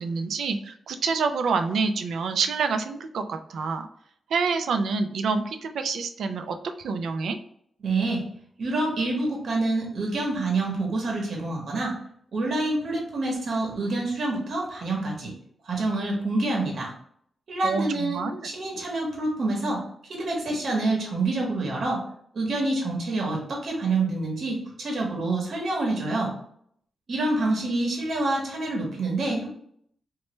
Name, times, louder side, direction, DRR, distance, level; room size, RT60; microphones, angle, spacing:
voice 1, 0.0-3.9 4.3-7.4 17.6-18.4 20.5-20.6, right 4 dB, 85° right, 7 dB, 0.3 m, -27 dB
voice 2, 7.8-8.2 8.6-11.9 12.3-15.3 15.6-16.9 17.5-19.8 20.1-22.0 22.3-26.3 27.1-29.5, right 2 dB, 60° right, -1 dB, 0.9 m, -27 dB
3.1 x 2.2 x 2.9 m, 0.66 s
wide cardioid pair, 140°, 0 cm